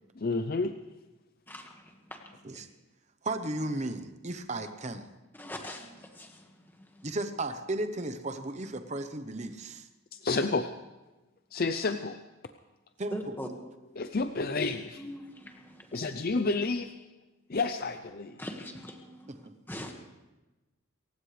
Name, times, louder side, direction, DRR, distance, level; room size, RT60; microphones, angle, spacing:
voice 1, 0.2-0.7 10.1-10.7 11.5-12.2 14.0-15.0 15.9-16.9 17.5-18.4, left 3 dB, 45° left, 8 dB, 0.6 m, -30 dB
voice 2, 1.5-2.7 5.3-7.1 13.1-13.5 15.0-16.1 18.4-19.9, left 1 dB, 10° left, 2 dB, 1.7 m, -43 dB
voice 3, 3.2-5.1 7.0-9.9 13.0-13.3 19.4-19.5, right 2 dB, 30° right, 8 dB, 0.9 m, -35 dB
27.5 x 15.5 x 3.3 m, 1.1 s
head